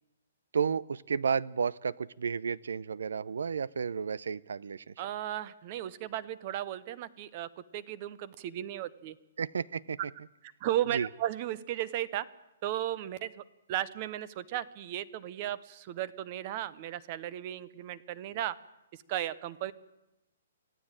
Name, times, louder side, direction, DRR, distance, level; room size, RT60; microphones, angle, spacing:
voice 1, 0.5-4.9 9.4-10.0 10.9-11.1, right 6 dB, 85° right, 21 dB, 0.7 m, -32 dB
voice 2, 5.0-9.2 10.4-12.3 12.6-18.6 18.9-19.7, right 12 dB, 25° right, 18 dB, 0.7 m, -35 dB
25.0 x 15.5 x 9.0 m, 0.96 s
hypercardioid pair, 180°, 0 cm